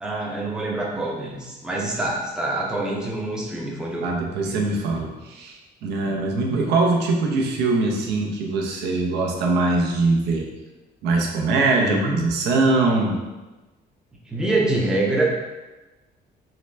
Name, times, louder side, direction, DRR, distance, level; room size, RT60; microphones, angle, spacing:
voice 1, 0.0-4.1 11.8-12.3 14.3-15.2, right 2 dB, 5° right, -3 dB, 0.5 m, -25 dB
voice 2, 4.0-10.5 11.0-13.2, right 3 dB, 85° right, 0 dB, 0.8 m, -22 dB
3.8 x 3.3 x 3.3 m, 1.1 s
cardioid pair, 180°, 17 cm